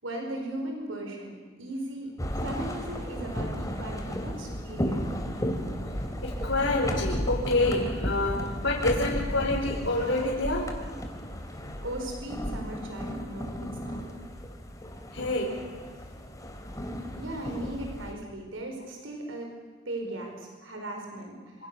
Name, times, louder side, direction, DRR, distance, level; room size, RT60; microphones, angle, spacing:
voice 1, 0.0-5.2 11.8-14.0 17.2-19.5 19.8-21.7, right 1 dB, 85° right, 2 dB, 5.0 m, -37 dB
sound 1, 2.2-18.1, equal, 20° left, 3.2 m, -34 dB
voice 2, 6.2-10.8 15.1-15.6 21.6-21.7, left 2 dB, 70° left, -4 dB, 4.7 m, -27 dB
27.5 x 26.5 x 7.0 m, 1.5 s
head